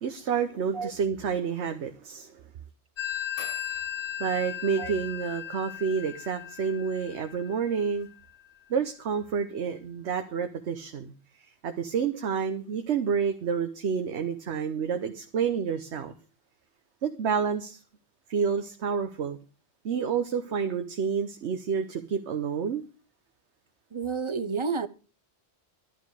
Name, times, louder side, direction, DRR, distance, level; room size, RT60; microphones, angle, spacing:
voice 1, 0.0-2.4 4.2-8.1 8.7-11.1 11.6-16.1 17.0-17.8 18.3-19.4 19.8-22.8, right 6 dB, 80° right, 1.2 m, -29 dB
Telephone, 3.0-8.3, left 10 dB, 80° left, 1.1 m, -37 dB
voice 2, 23.9-24.9, right 5 dB, 30° right, 0.7 m, -30 dB
11.5 x 11.5 x 4.8 m
omnidirectional pair, 1.1 m